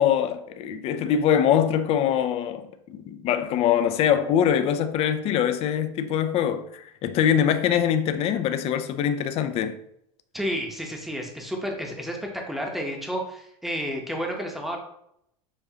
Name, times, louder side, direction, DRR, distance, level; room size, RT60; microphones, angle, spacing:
voice 1, 0.0-9.8, left 9 dB, 35° left, 0.4 m, -23 dB
voice 2, 10.3-14.8, equal, ahead, 0.8 m, -31 dB
7.0 x 2.6 x 2.8 m
supercardioid pair, 130°, 18 cm